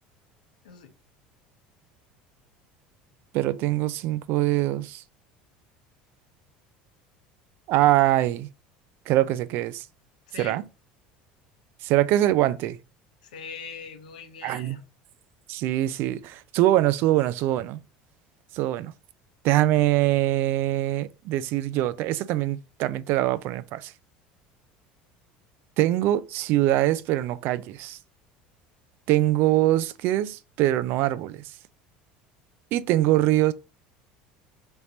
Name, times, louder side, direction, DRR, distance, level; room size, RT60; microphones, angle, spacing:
voice 1, 3.3-5.0 7.7-8.5 9.1-9.9 10.4-10.6 11.8-12.8 14.4-14.8 15.5-17.8 18.5-18.9 19.4-23.9 25.8-28.0 29.1-31.5 32.7-33.5, right 14 dB, 60° right, 0.3 m, -23 dB
voice 2, 10.3-10.6 13.2-14.8, left 6 dB, 90° left, 0.8 m, -41 dB
3.6 x 2.9 x 3.8 m
hypercardioid pair, 90°, 4 cm